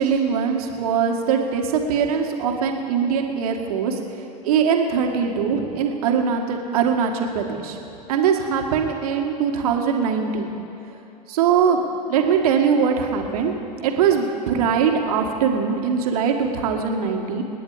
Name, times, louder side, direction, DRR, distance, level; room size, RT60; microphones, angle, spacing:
voice 1, 0.0-4.0 4.4-7.8 8.1-10.5 11.3-11.8 12.1-13.5 13.8-17.4, right 6 dB, 60° right, 3 dB, 2.0 m, -21 dB
28.0 x 9.9 x 5.1 m, 2.8 s
figure-of-eight pair, 85°, 21 cm